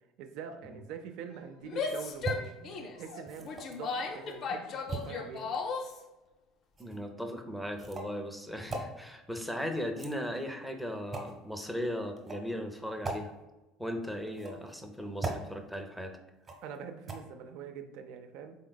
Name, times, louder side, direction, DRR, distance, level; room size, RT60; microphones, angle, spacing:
voice 1, 0.2-5.5 16.6-18.6, right 7 dB, 70° right, 6 dB, 0.5 m, -44 dB
Squeak, 1.3-3.2 3.8-5.9, left 2 dB, 85° left, 1.0 m, -59 dB
Female speech woman speaking / Yell, 1.6-6.0, left 4 dB, 50° left, 0.4 m, -36 dB
sound 1, 2.2-2.4 3.2-3.9 4.9-5.8 6.8-7.0 7.8-8.2 8.7-8.9 9.8-10.5 11.1-11.3 12.2-12.5 13.0-13.2 14.3-14.7 15.2-15.4 16.4-16.8 17.1-17.2, right 3 dB, 30° right, 0.9 m, -38 dB
voice 2, 6.8-13.3 13.8-16.2, equal, ahead, 5 dB, 0.5 m, -37 dB
3.8 x 3.6 x 2.2 m, 1.0 s
supercardioid pair, 105°, 0 cm